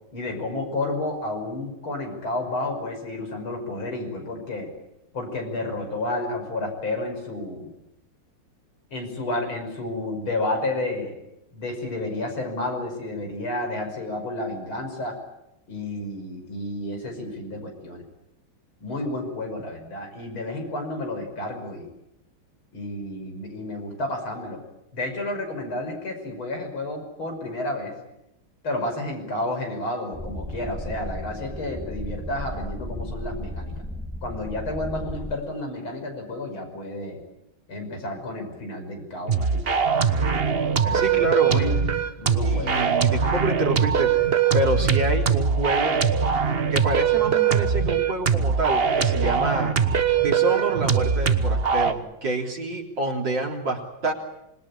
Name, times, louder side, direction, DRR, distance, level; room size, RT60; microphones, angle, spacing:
voice 1, 0.1-4.7 5.1-7.7 8.9-11.1 11.5-15.2 15.7-18.0 18.8-21.9 22.7-24.6 24.9-27.9 28.6-33.7 34.2-37.2 37.7-39.6 40.8-41.8 42.2-42.8, left 2 dB, 90° left, 4 dB, 6.6 m, -31 dB
sound 1, 30.1-35.3, left 1 dB, ahead, 1.9 m, -34 dB
sound 2, 39.3-51.9, right 6 dB, 35° right, 1.2 m, -22 dB
voice 2, 40.9-41.5 42.4-44.1 44.5-46.0 46.7-49.8 50.2-54.1, right 2 dB, 60° right, 0 dB, 4.2 m, -27 dB
26.5 x 21.5 x 8.7 m, 0.86 s
omnidirectional pair, 2.2 m